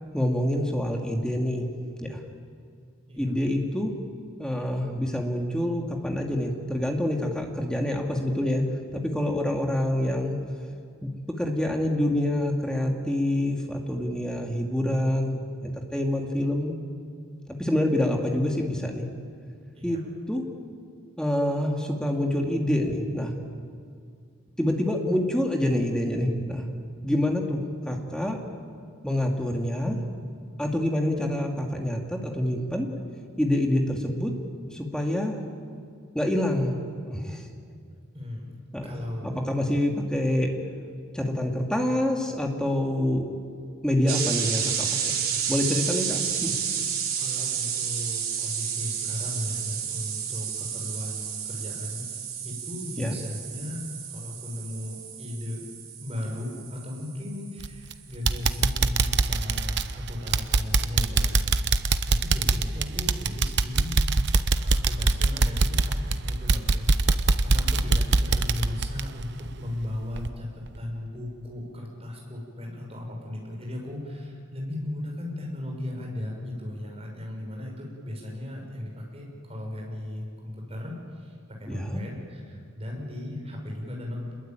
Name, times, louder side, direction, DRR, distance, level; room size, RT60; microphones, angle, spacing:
voice 1, 0.1-1.7 2.0-2.2 3.2-3.9 4.4-8.6 8.9-10.4 11.0-11.1 11.4-16.7 17.5-19.1 19.8-20.0 20.3-20.4 21.2-23.3 24.6-26.7 27.0-27.6 27.8-28.4 29.0-30.0 30.6-32.9 33.4-34.3 34.7-35.4 36.1-36.8 37.0-37.4 38.7-40.5 41.1-43.3 43.8-46.5 53.0-53.1 81.7-82.0, left 1 dB, 5° left, 2 dB, 2.5 m, -26 dB
voice 2, 38.1-38.5 38.8-39.5 47.2-52.1 52.4-55.6 56.0-64.0 64.5-70.5 70.8-80.9 81.2-81.3 81.6-84.3, left 1 dB, 30° right, -1 dB, 6.2 m, -36 dB
sound 1, 44.1-57.7, right 8 dB, 80° right, 5.2 m, -31 dB
sound 2, 57.6-57.9 58.3-69.8 70.2-70.3 70.8-70.9, right 3 dB, 55° right, 0.8 m, -23 dB
27.0 x 22.0 x 9.1 m, 2.3 s
head